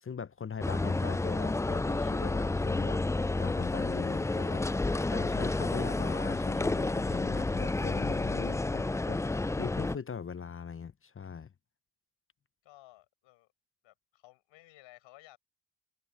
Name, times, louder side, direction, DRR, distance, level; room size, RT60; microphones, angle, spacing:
voice 1, 0.0-3.0 3.4-4.7 5.1-9.2 9.6-11.5, left 6 dB, 30° left, 0.7 m, -40 dB
sound 1, 0.6-10.0, left 2 dB, 5° left, 0.3 m, -30 dB
voice 2, 12.6-13.5 13.8-15.4, left 18 dB, 85° left, 5.0 m, -57 dB
supercardioid pair, 50°, 45 cm